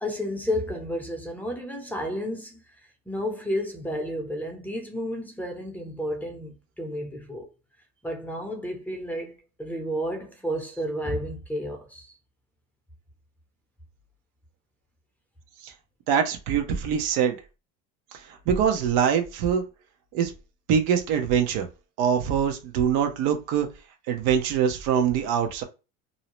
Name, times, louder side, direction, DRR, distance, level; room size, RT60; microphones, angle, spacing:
voice 1, 0.0-2.7 3.1-7.5 8.0-12.1, equal, 5° left, 0.6 m, -31 dB
voice 2, 16.1-17.4 18.3-19.6 20.1-20.3 20.7-21.7 22.0-23.7 24.1-25.6, right 8 dB, 75° right, 0.7 m, -23 dB
2.6 x 2.0 x 3.0 m
cardioid pair, 120°, 33 cm